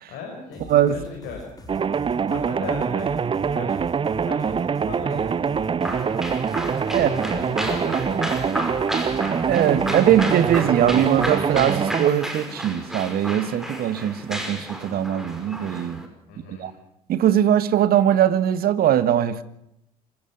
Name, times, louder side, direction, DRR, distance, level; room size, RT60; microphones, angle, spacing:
voice 1, 0.1-1.5 2.3-3.1 3.5-3.8 4.1-5.7 7.0-9.1 16.3-16.7, left 5 dB, 60° left, 1 dB, 5.5 m, -38 dB
sound 1, 0.5-11.8, left 2 dB, 20° left, 4.8 m, -43 dB
voice 2, 0.7-1.0 6.9-7.1 9.5-16.0 16.5-16.7 17.1-19.4, right 10 dB, 50° right, 14 dB, 1.6 m, -21 dB
sound 2, 1.7-12.1, right 6 dB, 25° right, 0.8 m, -24 dB
sound 3, 5.8-16.1, equal, ahead, 5.5 m, -32 dB
26.0 x 15.0 x 7.2 m, 0.79 s
figure-of-eight pair, 55°, 20 cm